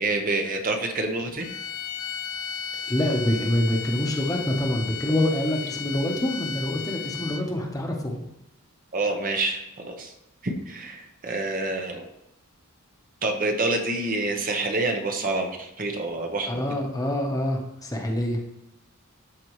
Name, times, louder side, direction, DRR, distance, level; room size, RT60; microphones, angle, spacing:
voice 1, 0.0-1.5 8.9-10.1 10.4-12.0 13.2-16.6, right 2 dB, 40° right, 3 dB, 0.9 m, -27 dB
sound 1, 1.4-7.6, left 7 dB, 80° left, 0.6 m, -34 dB
voice 2, 2.7-8.2 16.5-18.4, left 1 dB, 15° left, 1 dB, 1.0 m, -26 dB
13.0 x 4.4 x 3.1 m, 0.88 s
head